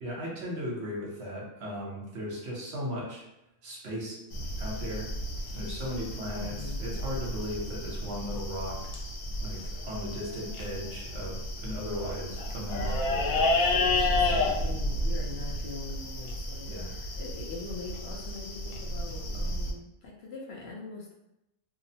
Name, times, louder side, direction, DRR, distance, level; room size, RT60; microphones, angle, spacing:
voice 1, 0.0-3.2 3.6-4.2 4.6-5.1 5.5-6.5 6.8-8.8 9.4-14.5 16.7-16.9, equal, 60° right, -3 dB, 1.1 m, -37 dB
sound 1, 4.3-19.7, left 2 dB, 85° left, 1.0 m, -31 dB
voice 2, 6.4-7.0 14.2-21.1, left 3 dB, 60° left, -2 dB, 0.8 m, -42 dB
2.8 x 2.0 x 2.7 m, 0.87 s
omnidirectional pair, 1.4 m